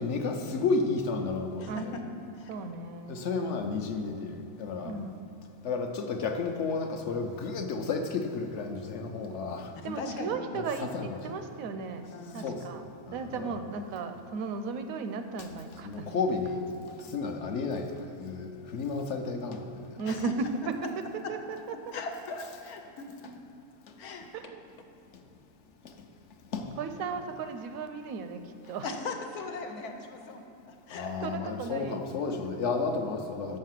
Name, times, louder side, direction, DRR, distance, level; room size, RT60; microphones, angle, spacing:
voice 1, 0.0-1.9 3.1-5.0 5.6-9.7 10.5-11.2 12.4-12.7 13.1-13.7 15.8-16.7 17.0-20.0 25.8-25.9 26.5-26.8 30.9-33.6, left 4 dB, 60° left, 5 dB, 0.9 m, -32 dB
voice 2, 1.6-2.6 4.8-5.2 9.8-10.4 12.1-12.6 20.0-20.4 21.9-23.4 24.0-24.5 28.8-31.3, left 3 dB, 90° left, 4 dB, 1.3 m, -39 dB
voice 3, 2.5-3.2 4.8-5.2 9.8-12.8 13.1-16.2 20.0-20.3 21.3-21.4 24.3-24.6 26.8-28.9 31.2-32.0, right 5 dB, 75° right, 8 dB, 1.0 m, -36 dB
6.4 x 6.4 x 7.5 m, 2.8 s
omnidirectional pair, 1.5 m